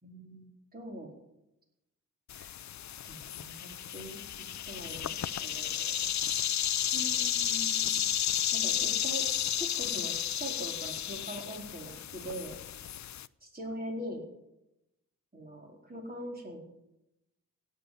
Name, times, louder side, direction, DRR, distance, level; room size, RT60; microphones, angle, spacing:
voice 1, 0.0-1.1 2.3-2.5 3.0-6.1 6.9-8.1 8.5-9.3 9.6-12.5 13.5-14.3 15.3-16.7, equal, 30° right, 0 dB, 4.3 m, -42 dB
sound 1, 2.3-13.3, left 10 dB, 60° left, 0.5 m, -32 dB
17.0 x 6.8 x 9.5 m, 0.90 s
wide cardioid pair, 85°, 32 cm